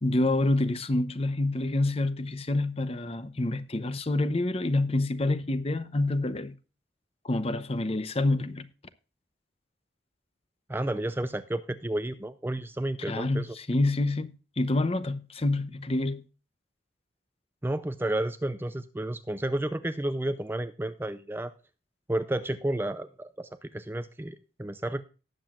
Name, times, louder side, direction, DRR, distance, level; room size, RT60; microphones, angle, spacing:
voice 1, 0.0-6.5 7.2-8.7 13.1-16.2, left 2 dB, 30° left, 0.8 m, -27 dB
voice 2, 10.7-13.6 17.6-21.5 22.1-25.0, right 1 dB, 10° right, 0.5 m, -31 dB
18.5 x 7.8 x 2.4 m
head